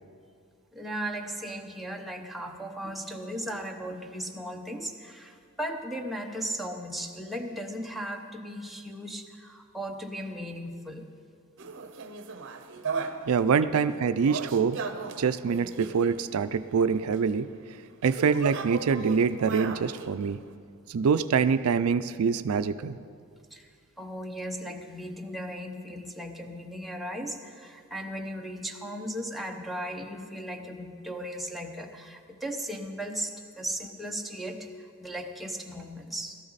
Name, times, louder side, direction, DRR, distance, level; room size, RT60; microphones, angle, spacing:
voice 1, 0.7-11.1 23.5-23.7 24.0-36.4, equal, ahead, 1 dB, 0.8 m, -37 dB
sound 1, 11.6-13.4 13.9-16.6 17.1-17.2 17.9-20.6, right 5 dB, 60° right, 0.8 m, -37 dB
voice 2, 13.3-14.8 15.2-17.5 18.0-20.4 20.9-23.0, right 6 dB, 80° right, 12 dB, 0.4 m, -25 dB
17.5 x 13.0 x 4.1 m, 2.2 s
head